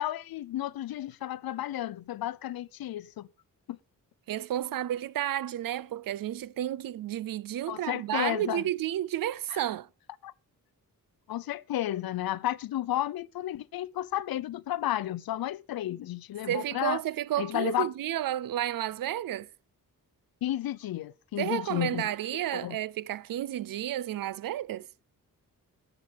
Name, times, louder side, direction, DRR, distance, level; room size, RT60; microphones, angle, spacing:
voice 1, 0.0-3.3 3.7-3.8 7.7-8.6 9.5-9.6 10.2-10.3 11.3-17.0 17.4-17.9 20.4-22.1 22.5-22.8, left 13 dB, 85° left, 0.7 m, -32 dB
voice 2, 4.3-9.9 16.5-19.5 21.4-24.9, right 12 dB, 75° right, 0.6 m, -31 dB
19.0 x 7.9 x 3.5 m
wide cardioid pair, 125°, 35 cm